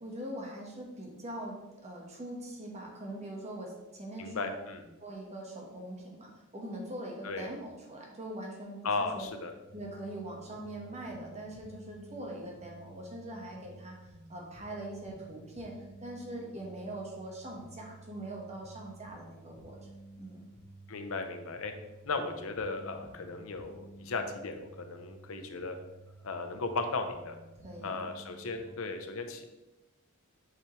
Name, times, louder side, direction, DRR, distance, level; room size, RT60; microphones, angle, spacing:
voice 1, 0.0-4.5 5.0-9.3 9.7-14.0 14.3-15.7 16.0-19.8 20.2-20.4 27.6-28.0, right 1 dB, 30° right, -1 dB, 1.4 m, -42 dB
voice 2, 4.2-4.8 7.2-7.5 8.8-9.5 20.9-21.7 22.1-25.8 26.2-27.3 27.8-29.5, left 3 dB, 70° left, 6 dB, 0.7 m, -36 dB
sound 1, 9.6-28.7, right 2 dB, 10° left, 1.8 m, -53 dB
7.4 x 5.2 x 3.2 m, 1.0 s
head